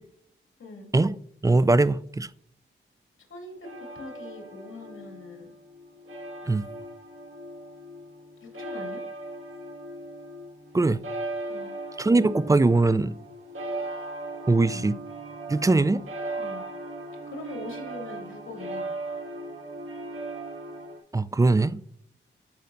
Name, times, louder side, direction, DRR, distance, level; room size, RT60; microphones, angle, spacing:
voice 1, 1.4-2.3 6.5-6.6 10.7-11.0 12.0-13.1 14.5-14.9 15.5-16.0 21.1-21.8, right 2 dB, 15° right, 0.3 m, -21 dB
voice 2, 3.3-5.5 8.4-9.0 11.5-11.7 14.5-14.9 16.4-16.6 17.3-18.9, left 3 dB, 70° left, 2.4 m, -42 dB
sound 1, 3.6-21.0, right 2 dB, 80° right, 1.9 m, -38 dB
12.0 x 5.4 x 2.6 m
cardioid pair, 80°, 21 cm